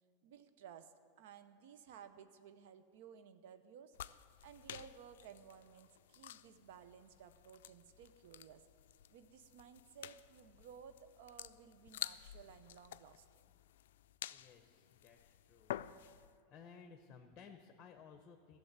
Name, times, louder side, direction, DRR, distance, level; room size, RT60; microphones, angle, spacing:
voice 1, 0.2-4.0 4.4-8.6 9.1-13.3, right 8 dB, 70° right, 11 dB, 0.8 m, -57 dB
sound 1, 3.9-16.4, left 12 dB, 75° left, 0.3 m, -51 dB
voice 2, 14.3-15.7 16.2-18.6, left 6 dB, 35° left, 5 dB, 1.0 m, -58 dB
13.0 x 6.9 x 9.5 m, 2.3 s
hypercardioid pair, 110°, 0 cm